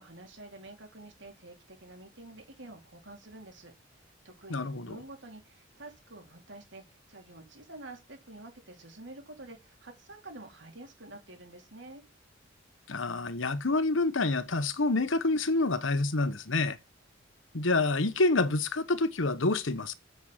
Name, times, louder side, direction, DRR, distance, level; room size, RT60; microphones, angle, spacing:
voice 1, 0.0-3.7 4.0-12.0, right 2 dB, 65° right, 3.7 m, -49 dB
voice 2, 4.5-5.0 12.9-16.8 17.5-19.9, left 2 dB, 80° left, 1.2 m, -27 dB
7.9 x 7.5 x 7.4 m
head